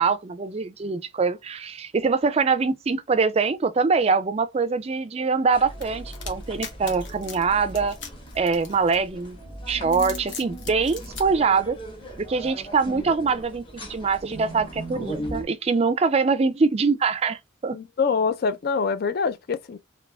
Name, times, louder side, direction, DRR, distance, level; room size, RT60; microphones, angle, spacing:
voice 1, 0.0-8.0 8.4-9.4 9.7-11.8 12.2-13.6 13.9-17.8, right 4 dB, 30° right, 0.3 m, -23 dB
sound 1, 5.5-15.5, right 1 dB, 25° left, 1.1 m, -38 dB
sound 2, 5.8-9.3 9.8-11.2, left 6 dB, 65° left, 0.9 m, -39 dB
voice 2, 17.7-19.8, left 5 dB, 50° left, 0.4 m, -25 dB
3.3 x 2.9 x 2.2 m
head